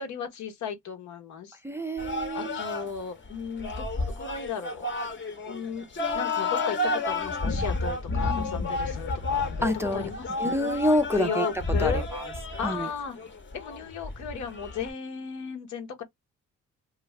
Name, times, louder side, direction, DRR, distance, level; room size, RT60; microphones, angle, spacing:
voice 1, 0.0-1.6 2.3-4.9 5.5-5.9 6.1-9.7 9.9-10.7 11.1-12.1 12.6-13.2 13.5-16.0, left 7 dB, 70° left, 0.9 m, -35 dB
voice 2, 1.6-2.6 9.6-10.1 10.4-11.5 11.8-11.9 12.6-12.8, equal, 10° right, 0.5 m, -27 dB
sound 1, 2.0-14.9, left 2 dB, 40° left, 0.9 m, -31 dB
2.5 x 2.3 x 3.1 m
cardioid pair, 90°, 30 cm